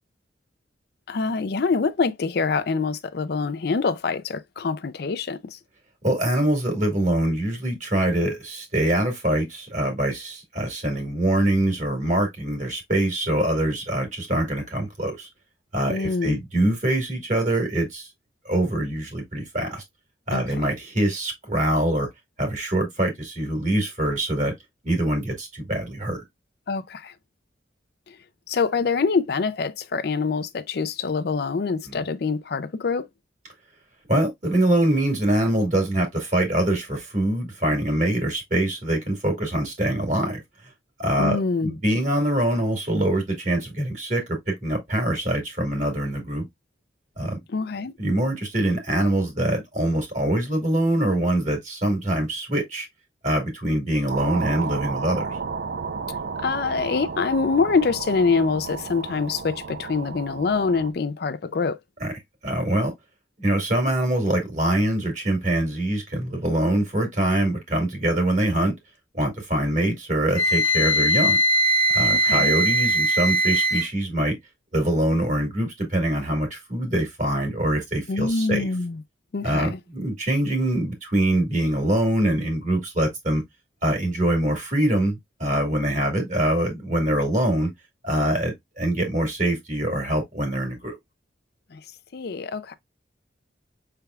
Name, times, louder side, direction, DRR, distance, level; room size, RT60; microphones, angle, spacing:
voice 1, 1.1-5.6 15.9-16.4 20.3-20.6 26.7-27.1 28.1-28.2 28.5-33.1 41.2-41.8 47.5-47.9 56.4-61.8 72.2-72.6 78.1-79.0 79.3-79.8 91.7-91.8 92.1-92.7, left 4 dB, 55° left, 0.4 m, -25 dB
voice 2, 6.0-15.3 15.7-18.1 18.5-19.8 20.3-22.1 22.4-24.5 24.8-26.2 34.1-40.4 41.0-41.4 41.6-44.2 44.5-46.5 47.2-47.4 48.0-52.9 53.2-55.4 62.0-62.1 62.4-62.9 63.4-68.7 69.1-71.4 71.9-74.4 74.7-78.7 79.4-83.4 83.8-87.7 88.0-91.0, right 1 dB, 40° right, 1.8 m, -24 dB
sound 1, 54.1-60.9, right 5 dB, 60° right, 0.5 m, -32 dB
Wind instrument woodwind instrument, 70.3-73.9, right 1 dB, 90° left, 0.8 m, -20 dB
5.7 x 3.4 x 2.3 m
head